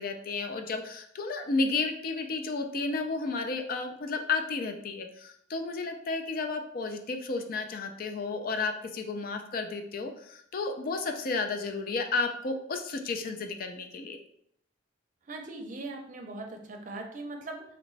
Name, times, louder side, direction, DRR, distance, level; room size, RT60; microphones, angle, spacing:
voice 1, 0.0-14.2, left 3 dB, 50° left, 5 dB, 0.4 m, -32 dB
voice 2, 15.3-17.6, right 2 dB, 45° right, 2 dB, 0.5 m, -40 dB
3.0 x 2.2 x 3.9 m, 0.70 s
head